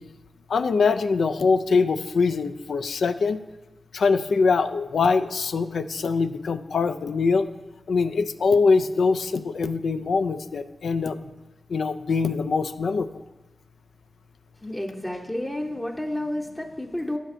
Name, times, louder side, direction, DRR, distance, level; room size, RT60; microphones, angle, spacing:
voice 1, 0.5-3.4 3.9-7.5 7.9-11.2 11.7-13.1, left 4 dB, 85° left, 10 dB, 0.3 m, -23 dB
voice 2, 14.6-17.2, left 1 dB, 15° left, 0 dB, 0.7 m, -30 dB
12.0 x 6.3 x 2.6 m, 1.1 s
cardioid pair, 65°, 0 cm